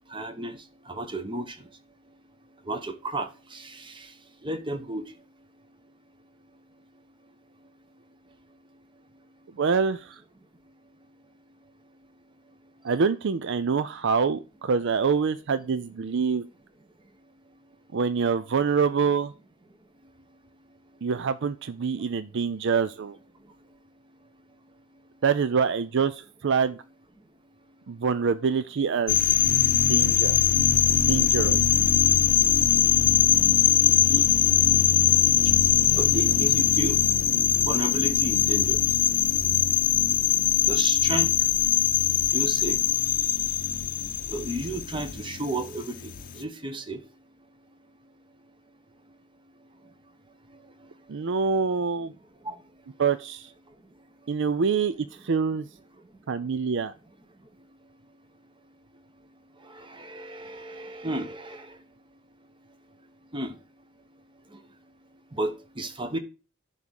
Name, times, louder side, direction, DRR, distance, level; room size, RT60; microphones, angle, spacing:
voice 1, 0.1-0.6 0.9-1.6 2.7-4.1 4.4-5.0 34.1-34.3 36.0-37.0 37.6-38.8 40.7-41.3 42.3-42.8 44.3-47.0 52.4-52.5 59.7-61.7 63.3-63.6 65.3-66.2, right 1 dB, 25° right, 1.0 m, -32 dB
voice 2, 9.6-10.2 12.8-16.4 17.9-19.3 21.0-23.2 25.2-26.8 27.9-29.2 29.9-30.4 31.1-31.6 51.1-52.1 53.0-53.5 54.3-55.7 56.3-56.9, right 5 dB, 65° right, 0.5 m, -25 dB
sound 1, 29.1-46.4, left 10 dB, 45° left, 0.7 m, -22 dB
11.0 x 3.7 x 6.4 m
head